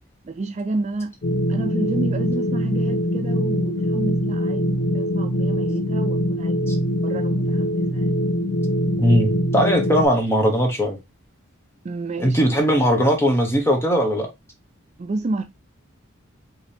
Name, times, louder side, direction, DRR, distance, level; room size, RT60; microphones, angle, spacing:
voice 1, 0.2-1.1 1.5-6.6 7.0-8.2 11.8-12.6 15.0-15.4, right 2 dB, 30° right, 0.3 m, -30 dB
sound 1, 1.2-10.1, equal, 50° left, 0.9 m, -23 dB
voice 2, 9.0-11.0 12.2-14.3, equal, 10° left, 1.0 m, -19 dB
5.4 x 3.0 x 3.3 m
head